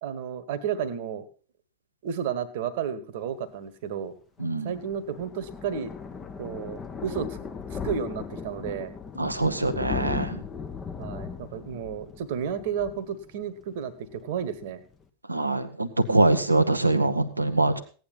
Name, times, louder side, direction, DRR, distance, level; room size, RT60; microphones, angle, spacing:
voice 1, 0.0-1.2 2.0-4.1 4.6-5.9 6.4-7.4 7.7-8.9 11.0-14.8, right 7 dB, 50° right, 13 dB, 1.5 m, -32 dB
Thunder, 4.4-13.8 14.1-14.3 14.7-14.8 14.9-15.0, left 6 dB, 20° left, 1.3 m, -37 dB
voice 2, 4.4-4.7 9.2-10.4 15.3-17.8, right 2 dB, 85° right, 8 dB, 1.0 m, -24 dB
16.5 x 9.6 x 4.2 m, 0.38 s
figure-of-eight pair, 90°, 0 cm